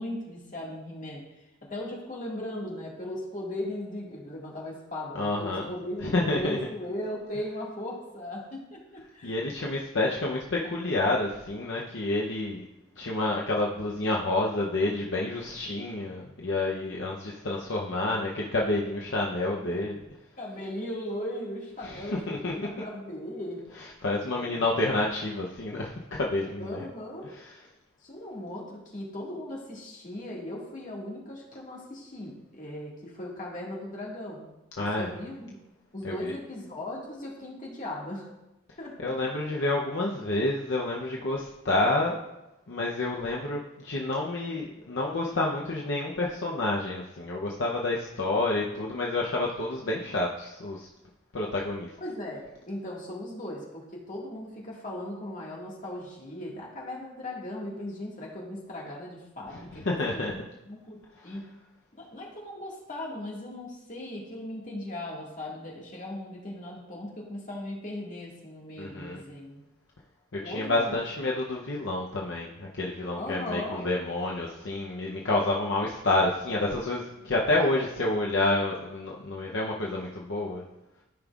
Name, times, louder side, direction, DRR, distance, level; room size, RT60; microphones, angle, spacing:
voice 1, 0.0-9.4 19.7-20.0 20.4-23.6 24.3-24.9 26.6-27.3 28.0-34.5 34.8-35.6 35.9-38.3 38.8-39.1 52.0-60.4 60.7-61.5 61.9-69.6 70.4-70.9 73.2-73.8, left 1 dB, 35° left, -3 dB, 1.8 m, -38 dB
voice 2, 5.1-5.7 6.0-6.6 9.2-12.6 13.0-20.0 21.8-22.5 24.0-26.8 34.8-35.1 36.0-36.3 39.0-42.2 42.7-50.9 51.3-51.9 59.5-59.6 59.8-60.3 61.2-61.3 68.8-69.2 70.3-80.6, left 2 dB, 60° left, -3 dB, 0.7 m, -29 dB
13.5 x 5.3 x 2.4 m, 0.94 s
head